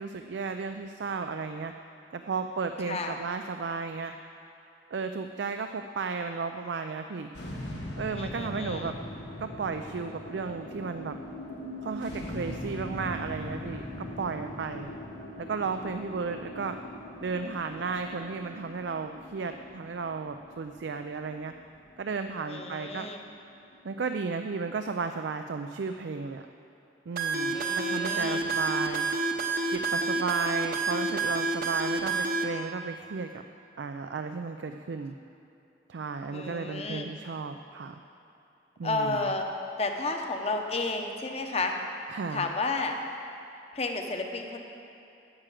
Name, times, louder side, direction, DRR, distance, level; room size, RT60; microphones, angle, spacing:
voice 1, 0.0-1.7 2.1-4.1 4.9-7.3 8.0-8.9 9.4-11.2 11.8-14.9 15.4-16.8 17.2-21.5 22.0-23.1 23.8-26.4 27.1-29.1 29.7-33.3 33.8-35.1 35.9-38.0 38.8-39.3 42.1-42.5, right 4 dB, 80° right, 7 dB, 0.4 m, -34 dB
sound 1, 7.3-23.7, left 1 dB, 80° left, 1.7 m, -41 dB
voice 2, 8.1-8.9 22.5-23.2 27.5-28.4 36.3-37.1 38.8-39.4 39.8-41.7 42.3-42.9 43.7-44.6, left 3 dB, 35° left, 3 dB, 0.9 m, -32 dB
sound 2, 27.2-32.4, right 3 dB, 55° right, 0.9 m, -28 dB
9.6 x 8.8 x 7.5 m, 2.8 s
head